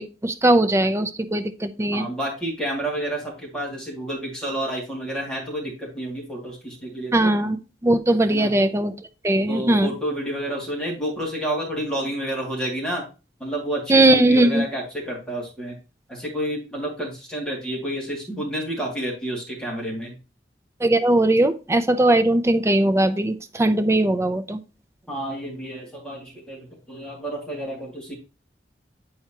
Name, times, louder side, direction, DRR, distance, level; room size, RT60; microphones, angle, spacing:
voice 1, 0.0-2.1 7.1-8.9 9.2-9.9 13.9-14.6 20.8-24.6, right 1 dB, 15° right, 10 dB, 0.5 m, -19 dB
voice 2, 1.9-7.3 8.3-8.5 9.5-13.0 13.4-15.8 16.1-20.2 25.1-28.1, right 1 dB, 5° left, -3 dB, 2.3 m, -30 dB
7.9 x 4.6 x 2.9 m, 0.30 s
head